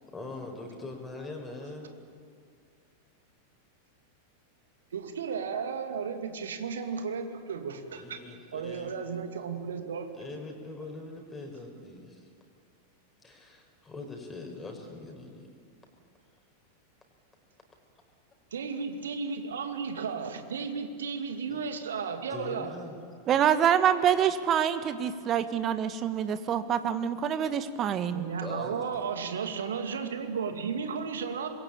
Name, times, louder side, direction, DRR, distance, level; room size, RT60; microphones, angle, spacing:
voice 1, 0.1-1.9 8.0-9.0 10.1-12.3 13.2-15.5 21.5-21.6 22.3-23.2 28.4-29.1, left 3 dB, 10° left, 2 dB, 5.2 m, -42 dB
voice 2, 4.9-8.2 8.5-10.1 18.5-22.7 28.1-31.5, right 6 dB, 65° right, 7 dB, 2.4 m, -34 dB
voice 3, 23.3-28.2, right 9 dB, 30° right, 11 dB, 1.5 m, -26 dB
26.0 x 22.5 x 8.9 m, 2.2 s
figure-of-eight pair, 90°, 0 cm